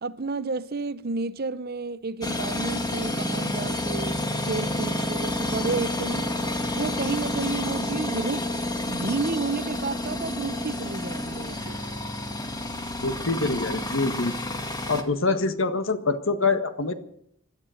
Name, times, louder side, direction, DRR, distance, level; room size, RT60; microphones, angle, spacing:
voice 1, 0.0-4.2 4.5-6.3 6.7-8.5 8.9-11.8, right 4 dB, 50° right, 0.7 m, -31 dB
sound 1, 2.2-15.0, left 1 dB, 20° left, 1.8 m, -29 dB
voice 2, 13.0-14.3 14.9-16.9, left 3 dB, 70° left, 1.6 m, -25 dB
17.0 x 12.0 x 6.5 m
head